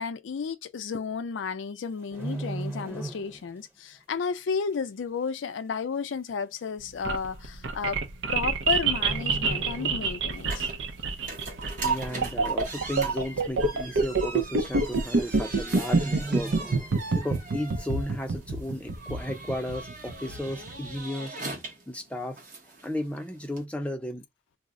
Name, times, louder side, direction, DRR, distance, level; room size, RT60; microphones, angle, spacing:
voice 1, 0.0-8.0 8.3-10.7, left 5 dB, 85° left, 0.4 m, -32 dB
sound 1, 1.9-3.6 3.9-4.2 4.7-4.8 5.7-5.8 6.0-6.1 7.0-7.2 8.3-8.7 9.0-10.5 10.9-11.1 11.6-12.1 12.5-12.6 12.8-12.9 13.3-13.4 14.4-14.5 14.7-15.0 15.3-15.4 15.8-17.5 17.8-17.9, right 2 dB, 10° right, 0.8 m, -38 dB
sound 2, 6.8-20.9, right 4 dB, 80° right, 0.6 m, -27 dB
sound 3, 10.3-23.6, right 2 dB, 45° right, 0.9 m, -42 dB
voice 2, 11.8-16.6 17.1-21.4 21.9-22.4 22.8-24.2, left 1 dB, 5° left, 0.4 m, -34 dB
2.4 x 2.0 x 3.6 m
head